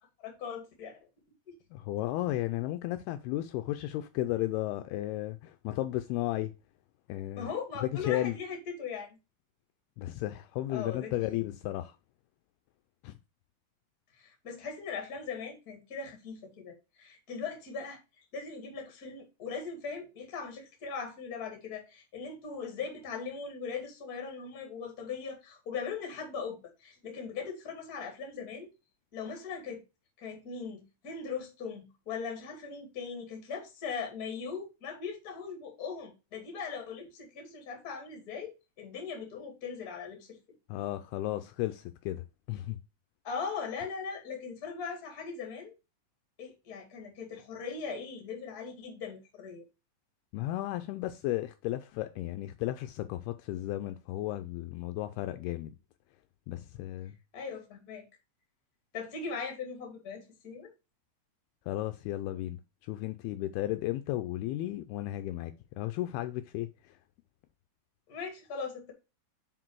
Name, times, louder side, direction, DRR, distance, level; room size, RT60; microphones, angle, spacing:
voice 1, 0.2-0.9 1.5-1.6 7.4-9.2 10.7-11.5 14.2-18.0 18.3-28.7 29.1-29.8 30.2-40.4 43.2-45.7 46.4-49.6 57.3-58.0 58.9-60.7 68.1-68.9, left 5 dB, 40° left, 1.4 m, -39 dB
voice 2, 1.7-6.5 7.1-7.5 7.8-8.4 10.0-12.0 13.0-13.1 40.7-42.8 50.3-55.8 56.5-57.1 61.7-65.5 65.8-67.0, left 15 dB, 85° left, 2.3 m, -34 dB
6.0 x 4.7 x 4.6 m
omnidirectional pair, 4.7 m